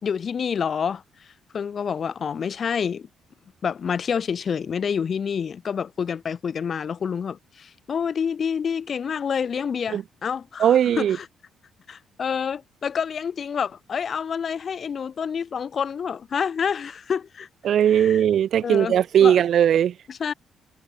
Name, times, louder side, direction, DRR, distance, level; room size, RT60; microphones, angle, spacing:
voice 1, 0.0-1.0 1.5-3.1 3.6-11.3 11.9-17.5 17.9-18.2 18.6-18.9 19.2-19.4 20.1-20.3, left 7 dB, 50° left, 2.2 m, -28 dB
voice 2, 10.6-11.2 17.6-19.9, right 9 dB, 65° right, 1.7 m, -18 dB
cardioid pair, 90°, 0 cm